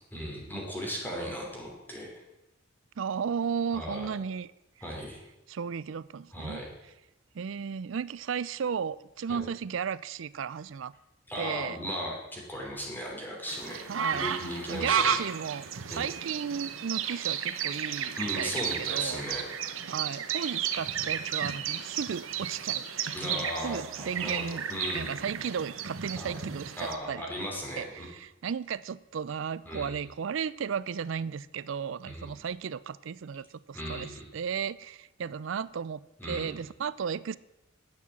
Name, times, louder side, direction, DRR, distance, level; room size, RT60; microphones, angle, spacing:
voice 1, 0.1-2.1 3.7-4.0 4.8-5.2 6.3-6.7 9.3-9.4 11.3-13.8 14.1-15.2 15.9-16.1 18.2-19.4 23.1-25.2 26.2-26.4 26.8-28.1 29.7-30.0 32.1-32.3 33.7-34.2 36.2-36.6, equal, 10° left, 3.1 m, -36 dB
voice 2, 3.0-4.5 5.5-6.6 7.3-10.9 11.4-11.8 13.9-14.3 14.7-15.7 15.9-19.2 19.9-24.6 24.9-27.2 27.8-37.4, right 7 dB, 70° right, 0.4 m, -35 dB
sound 1, 13.5-26.9, right 8 dB, 85° right, 0.9 m, -33 dB
11.0 x 8.9 x 7.3 m
head